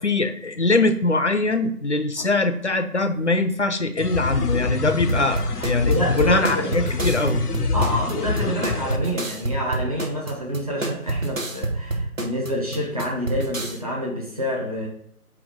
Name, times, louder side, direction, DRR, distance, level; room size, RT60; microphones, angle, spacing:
voice 1, 0.0-7.4, left 2 dB, 50° left, 9 dB, 0.7 m, -22 dB
sound 1, 4.0-9.0, left 4 dB, 90° left, 0.8 m, -26 dB
sound 2, 5.1-13.8, right 2 dB, 60° right, 1.2 m, -28 dB
voice 2, 5.8-6.7 7.7-14.9, equal, 25° right, -4 dB, 1.2 m, -27 dB
8.2 x 2.8 x 5.0 m, 0.72 s
figure-of-eight pair, 165°, 45 cm